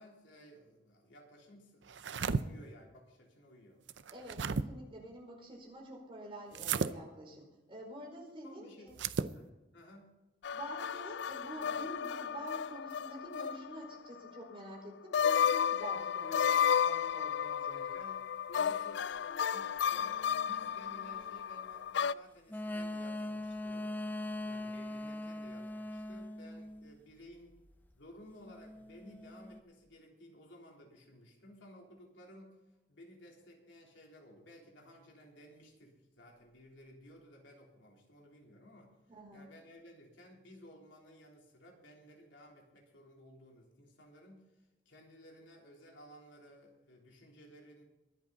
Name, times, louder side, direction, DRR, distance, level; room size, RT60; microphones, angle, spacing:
voice 1, 0.0-3.8 8.4-8.9 9.3-10.2 17.7-18.2 18.5-23.9 24.4-27.6 27.9-32.6 32.9-38.9 39.3-47.8, equal, 90° left, -1 dB, 3.6 m, -56 dB
sound 1, 1.9-2.4 3.9-4.6 6.5-6.9 8.9-9.3, right 5 dB, 80° right, 0.6 m, -33 dB
voice 2, 4.1-9.0 10.5-17.9 39.1-39.5, right 1 dB, 30° right, -1 dB, 4.8 m, -47 dB
sound 2, 10.4-14.0 14.3-14.4 15.1-22.1, left 8 dB, 65° left, 0.3 m, -33 dB
sound 3, 19.9-21.2 22.5-27.0 28.4-29.6, left 1 dB, 10° left, 0.6 m, -42 dB
23.0 x 8.5 x 4.1 m, 1.0 s
head